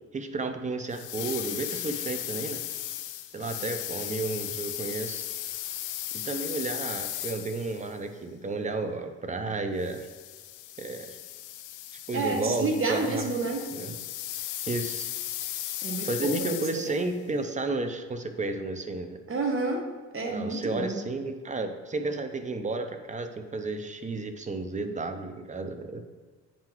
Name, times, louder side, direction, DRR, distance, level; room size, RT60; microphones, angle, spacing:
voice 1, 0.1-2.6 3.3-5.2 6.1-10.1 10.8-11.2 12.1-13.3 13.7-13.9 14.7-15.1 16.0-19.2 20.3-26.0, right 3 dB, 25° right, 7 dB, 0.6 m, -32 dB
sound 1, 0.9-7.9 9.8-17.1, left 13 dB, 90° left, 0.5 m, -36 dB
voice 2, 12.1-13.7 15.8-17.0 19.3-19.9 20.1-21.0, right 3 dB, 45° right, 2 dB, 0.9 m, -29 dB
8.5 x 3.8 x 3.0 m, 1.4 s
cardioid pair, 90°, 30 cm